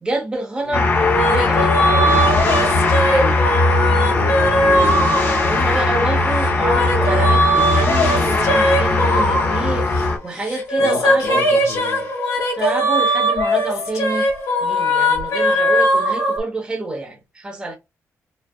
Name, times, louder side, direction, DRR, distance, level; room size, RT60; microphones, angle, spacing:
voice 1, 0.0-3.4 5.4-11.4 12.6-14.3 14.6-17.8, right 2 dB, 15° right, 1.0 m, -27 dB
sound 1, 0.7-10.2, left 2 dB, 40° left, 0.8 m, -19 dB
sound 2, 1.0-5.9 6.4-10.1 10.5-16.4, equal, 80° left, 1.9 m, -20 dB
voice 2, 4.1-5.1 10.8-12.1, left 4 dB, 65° left, 1.0 m, -29 dB
5.2 x 2.4 x 2.3 m
wide cardioid pair, 160°, 6 cm